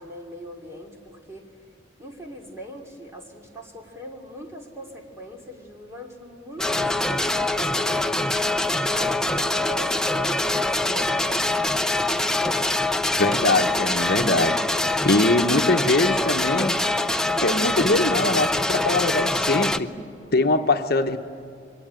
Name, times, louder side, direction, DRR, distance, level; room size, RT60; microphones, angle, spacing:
voice 1, 0.0-1.7 2.0-8.4 8.8-11.8, equal, 15° right, 1 dB, 2.8 m, -41 dB
Dhaak beats from Kolkata - Durga Puja Durga Pujo, 6.6-19.8, left 2 dB, 5° left, 0.6 m, -24 dB
voice 2, 13.2-16.8 17.4-19.9 20.3-21.2, left 2 dB, 55° left, 6 dB, 1.0 m, -22 dB
27.5 x 22.0 x 8.9 m, 2.3 s
head